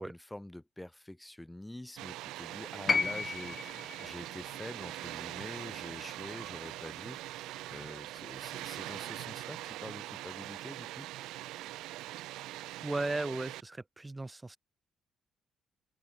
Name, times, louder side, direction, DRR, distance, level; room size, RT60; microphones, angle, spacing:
voice 1, 0.0-11.1, left 1 dB, 10° left, 2.9 m, -46 dB
Water, 2.0-13.6, right 16 dB, 90° right, 0.5 m, -42 dB
sound 1, 2.9-7.1 8.2-8.3, left 4 dB, 35° left, 1.6 m, -35 dB
voice 2, 12.8-14.6, right 2 dB, 15° right, 3.9 m, -36 dB
open air
cardioid pair, 80°, 0 cm